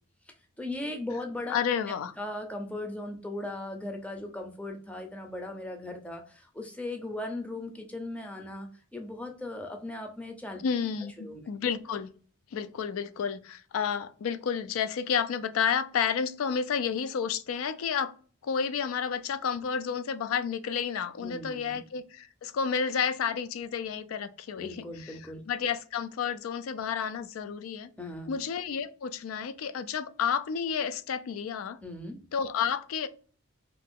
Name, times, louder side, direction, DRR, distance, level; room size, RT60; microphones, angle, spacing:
voice 1, 0.3-1.6 2.2-10.6 11.2-11.5 21.2-21.8 24.6-25.4 28.0-28.4 31.8-32.2, left 2 dB, 5° left, 0.5 m, -38 dB
voice 2, 1.5-2.1 10.6-12.1 12.5-18.1 18.4-25.2 25.5-27.9 28.3-31.8 32.3-33.1, left 7 dB, 80° left, 0.3 m, -31 dB
2.8 x 2.5 x 3.5 m
head